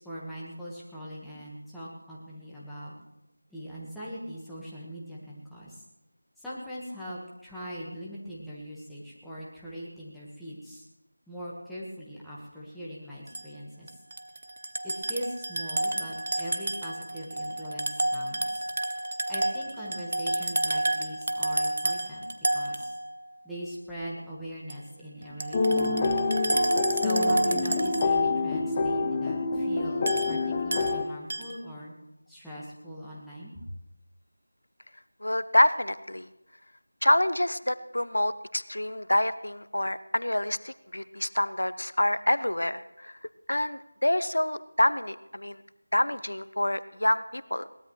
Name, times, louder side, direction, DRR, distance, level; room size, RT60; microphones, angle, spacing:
voice 1, 0.0-2.9 3.5-5.8 6.4-10.9 11.3-14.0 14.8-18.6 19.3-22.3 22.5-22.9 23.4-26.3 26.9-31.9 32.3-33.7, equal, ahead, -10 dB, 1.5 m, -41 dB
sound 1, 13.3-13.4 13.9-23.3 24.7-24.8 25.2-28.5 30.1-30.9 31.3-31.6, right 1 dB, 50° right, 1.1 m, -30 dB
sound 2, 25.5-31.0, left 3 dB, 20° left, 0.7 m, -27 dB
voice 2, 35.2-36.3 37.0-43.2 43.5-45.6 45.9-47.6, left 1 dB, 85° left, 15 dB, 0.7 m, -27 dB
21.5 x 18.5 x 3.2 m, 0.93 s
figure-of-eight pair, 170°, 0 cm